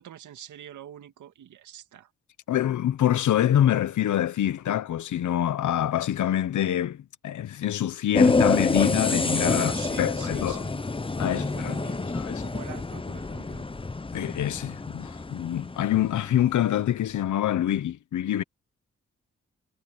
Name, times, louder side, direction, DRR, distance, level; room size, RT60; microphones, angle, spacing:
voice 1, 0.0-2.1 9.5-10.9 11.2-13.7, right 10 dB, 85° right, 2.3 m, -44 dB
voice 2, 2.5-7.0 7.2-9.7 10.0-10.6 11.2-11.7 12.1-12.4 14.1-18.4, left 11 dB, 80° left, 1.2 m, -25 dB
sound 1, 8.1-16.5, left 3 dB, 20° left, 0.7 m, -27 dB
supercardioid pair, 40°, 29 cm